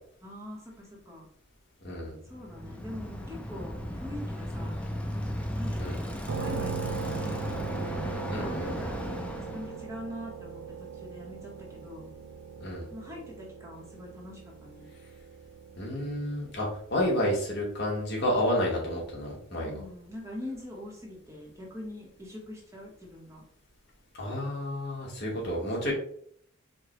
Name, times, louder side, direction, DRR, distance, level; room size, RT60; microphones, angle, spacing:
voice 1, 0.2-1.3 2.2-4.8 5.5-7.4 8.3-9.0 9.4-12.1 12.9-14.9 19.6-23.4 25.8-25.9, left 1 dB, 15° right, -2 dB, 0.9 m, -43 dB
voice 2, 1.8-2.1 5.8-6.0 8.3-8.9 12.6-12.8 15.8-19.7 24.2-25.9, equal, 55° left, -3 dB, 1.2 m, -30 dB
Bicycle, 2.3-9.8, equal, 5° left, 0.3 m, -35 dB
sound 1, 6.3-20.0, right 6 dB, 70° right, 0.3 m, -41 dB
4.8 x 2.1 x 3.0 m, 0.62 s
head